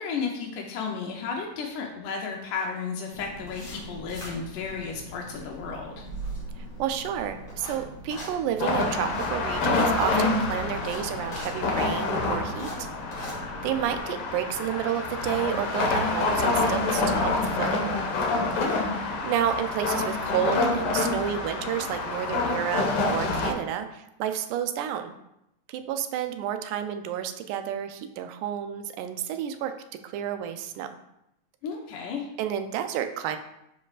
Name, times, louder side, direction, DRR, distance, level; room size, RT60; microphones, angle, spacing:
voice 1, 0.0-6.1 18.5-18.9 31.6-32.3, left 5 dB, 80° left, 1 dB, 2.3 m, -33 dB
sound 1, 3.1-14.0, right 1 dB, 40° left, 2.4 m, -41 dB
voice 2, 6.6-13.3 13.6-17.9 18.7-18.8 19.2-25.2 25.7-29.7 30.0-30.9 32.4-33.4, right 9 dB, 85° right, 8 dB, 2.1 m, -30 dB
sound 2, 8.6-23.5, left 3 dB, 65° left, 1.5 m, -27 dB
11.5 x 4.6 x 2.5 m, 0.84 s
omnidirectional pair, 3.6 m